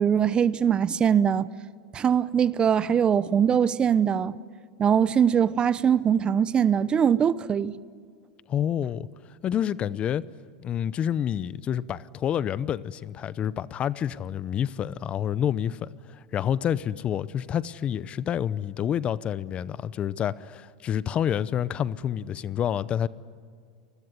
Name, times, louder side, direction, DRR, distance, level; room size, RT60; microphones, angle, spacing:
voice 1, 0.0-1.5 1.9-4.4 4.8-7.7, right 8 dB, 25° right, 0.8 m, -22 dB
voice 2, 8.5-9.1 9.4-10.2 10.6-23.1, left 9 dB, 35° left, 0.7 m, -28 dB
29.5 x 20.5 x 9.6 m
hypercardioid pair, 110°, 4 cm